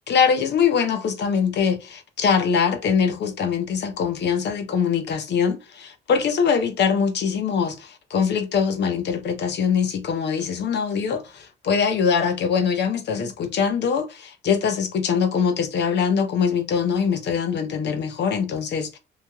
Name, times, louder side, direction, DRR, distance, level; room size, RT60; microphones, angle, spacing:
voice 1, 0.1-19.0, left 6 dB, 60° left, 0.7 m, -23 dB
3.1 x 2.4 x 2.2 m
cardioid pair, 90°, 20 cm